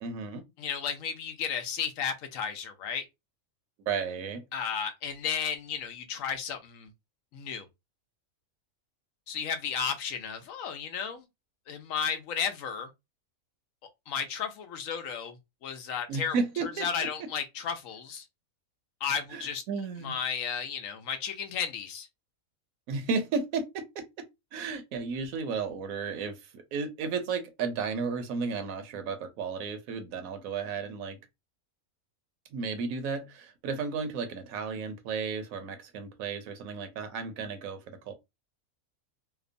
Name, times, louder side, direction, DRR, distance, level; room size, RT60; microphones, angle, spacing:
voice 1, 0.0-0.4 3.9-4.4 16.1-17.3 19.3-20.2 22.9-24.0 24.5-31.2 32.5-38.1, right 5 dB, 75° right, 1.0 m, -33 dB
voice 2, 0.6-3.0 4.5-6.9 7.3-7.7 9.3-11.2 11.7-12.9 14.1-15.4 15.6-16.4 16.6-18.2 19.0-19.6 20.0-22.1, left 7 dB, 75° left, 0.9 m, -33 dB
2.9 x 2.0 x 2.5 m
omnidirectional pair, 1.5 m